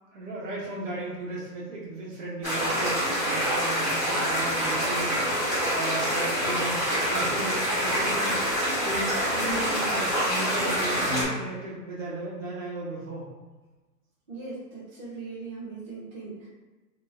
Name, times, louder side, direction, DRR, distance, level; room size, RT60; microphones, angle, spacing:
voice 1, 0.1-6.8 7.1-8.3 8.8-13.3, right 2 dB, 50° right, -5 dB, 1.3 m, -35 dB
sound 1, 2.4-11.2, equal, 5° right, 1.5 m, -26 dB
voice 2, 14.3-16.5, right 4 dB, 30° right, -10 dB, 0.8 m, -39 dB
4.3 x 3.0 x 2.7 m, 1.2 s
hypercardioid pair, 170°, 49 cm